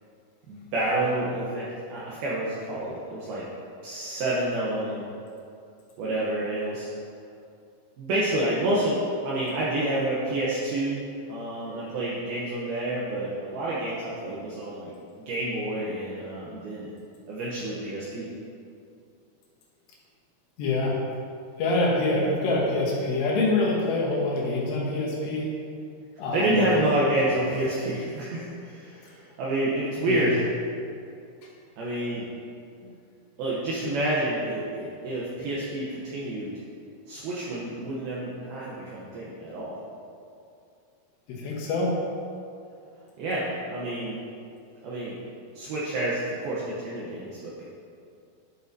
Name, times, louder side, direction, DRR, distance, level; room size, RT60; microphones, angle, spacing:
voice 1, 0.5-3.4 3.8-5.0 6.0-6.9 8.0-11.0 11.3-14.9 15.2-16.9 17.3-18.3 26.3-30.3 31.8-32.3 33.4-36.5 37.1-39.7 43.2-44.2 44.8-45.2 45.5-47.6, right 1 dB, 70° right, -7 dB, 2.5 m, -28 dB
voice 2, 20.6-21.0 21.6-25.5 26.2-26.6 30.1-30.4 41.3-42.0, left 2 dB, 80° left, -3 dB, 3.3 m, -25 dB
11.0 x 6.8 x 2.7 m, 2.5 s
omnidirectional pair, 4.9 m